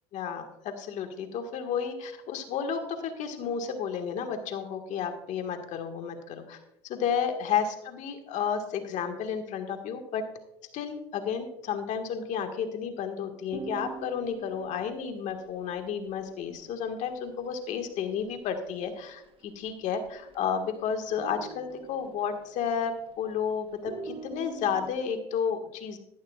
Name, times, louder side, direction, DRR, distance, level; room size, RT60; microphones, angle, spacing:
voice 1, 0.1-10.2 10.7-26.0, left 7 dB, 60° left, 6 dB, 1.7 m, -32 dB
sound 1, 13.5-18.6 18.8-18.9 19.2-19.7 20.0-20.7 21.0-23.3 23.7-24.9, right 5 dB, 40° right, 1.1 m, -44 dB
13.0 x 11.5 x 2.4 m, 0.83 s
supercardioid pair, 95°, 14 cm